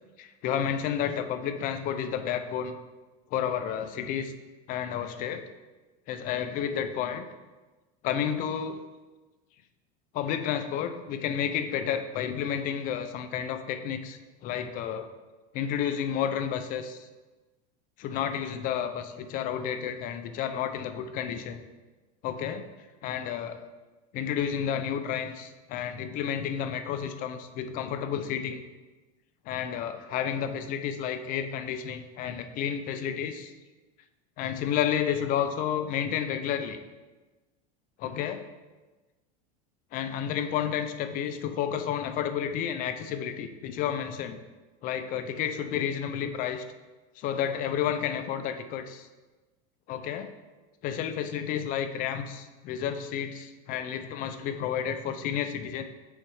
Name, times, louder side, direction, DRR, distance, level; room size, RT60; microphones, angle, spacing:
voice 1, 0.2-2.8 3.3-4.3 4.7-5.4 6.1-7.3 8.0-8.8 10.1-15.1 15.5-17.1 18.0-21.6 22.2-22.6 23.0-23.6 24.1-28.6 29.5-33.5 34.4-36.8 38.0-38.4 39.9-44.4 44.8-46.6 47.2-49.1 49.9-50.3 50.8-55.8, left 9 dB, 45° left, 9 dB, 0.6 m, -31 dB
6.4 x 4.3 x 4.9 m, 1.2 s
supercardioid pair, 130°, 19 cm